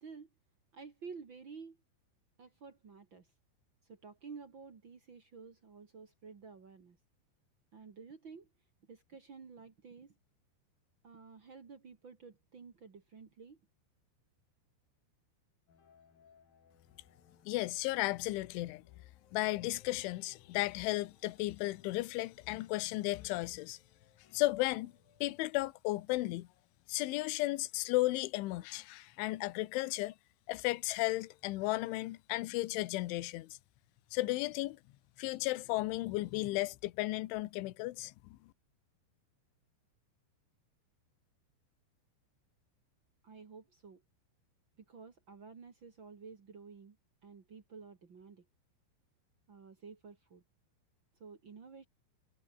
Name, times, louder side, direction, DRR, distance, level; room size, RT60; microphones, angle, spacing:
voice 1, 0.7-1.8 2.4-3.3 3.8-7.0 7.7-8.5 8.9-10.1 11.0-13.6 43.2-44.0 44.9-47.0 47.2-48.4 49.5-50.4 51.2-51.8, right 5 dB, 55° right, 1.3 m, -52 dB
sound 1, 15.7-25.5, left 6 dB, 50° left, 5.2 m, -67 dB
voice 2, 17.5-18.8 19.3-23.8 24.3-24.9 25.2-26.5 26.9-30.2 30.5-33.6 34.1-34.8 35.2-38.1, left 19 dB, 75° left, 3.4 m, -34 dB
omnidirectional pair, 5.7 m